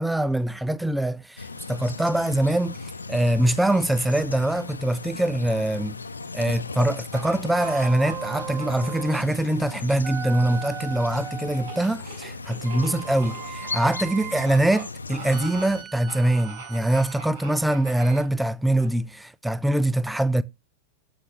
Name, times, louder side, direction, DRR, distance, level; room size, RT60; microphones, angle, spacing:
voice 1, 0.0-2.8 3.1-6.0 6.3-20.4, right 1 dB, 5° right, 0.6 m, -23 dB
sound 1, 1.4-15.8, left 3 dB, 80° left, 0.9 m, -37 dB
sound 2, 7.1-9.2 11.5-13.9 14.4-14.8 15.1-15.7 16.1-18.3 18.8-18.9, right 4 dB, 55° right, 4.9 m, -41 dB
sound 3, 7.5-9.3 10.0-11.9 12.7-14.6 15.3-17.2 18.0-18.2, right 8 dB, 25° right, 1.0 m, -38 dB
15.0 x 5.7 x 3.3 m
figure-of-eight pair, 90°, 0 cm